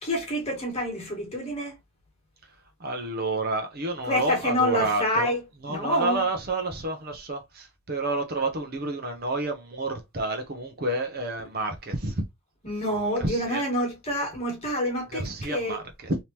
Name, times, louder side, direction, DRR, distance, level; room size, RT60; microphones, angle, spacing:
voice 1, 0.0-1.8 4.0-5.4 5.7-6.2 12.6-15.8, equal, 30° left, 1.5 m, -27 dB
voice 2, 2.8-5.3 5.6-12.2 13.2-13.6 15.1-16.2, right 2 dB, 45° right, 0.7 m, -29 dB
3.5 x 2.9 x 2.9 m
head